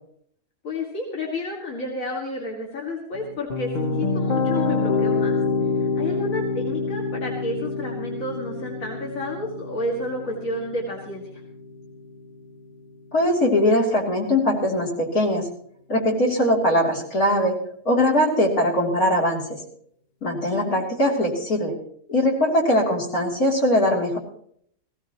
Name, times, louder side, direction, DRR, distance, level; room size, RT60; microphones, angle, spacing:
voice 1, 0.6-5.4 5.8-11.4 20.5-20.9, left 1 dB, 70° left, -2 dB, 2.6 m, -31 dB
sound 1, 3.1-12.3, left 4 dB, 40° left, 0.8 m, -27 dB
voice 2, 13.1-15.5 15.9-17.6 17.9-19.6 20.2-21.7 22.1-24.2, left 1 dB, 85° left, -2 dB, 3.7 m, -21 dB
19.0 x 16.0 x 3.0 m, 0.66 s
omnidirectional pair, 1.5 m